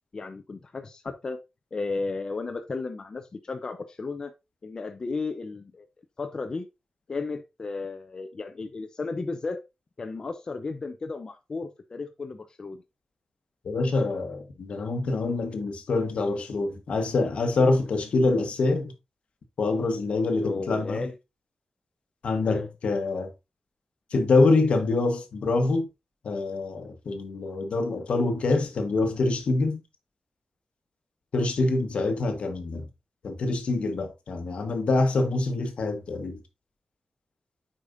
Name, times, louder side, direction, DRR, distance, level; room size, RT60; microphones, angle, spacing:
voice 1, 0.1-1.4 1.7-4.3 4.6-5.9 6.2-6.7 7.1-9.6 10.0-12.8 20.4-21.1 22.4-22.7, left 3 dB, 40° left, 0.7 m, -34 dB
voice 2, 13.6-18.9 19.6-21.1 22.2-23.3 24.1-25.9 26.2-29.8 31.3-32.9 33.2-36.4, left 3 dB, 75° left, 1.3 m, -25 dB
8.6 x 5.0 x 2.7 m
wide cardioid pair, 140°, 2 cm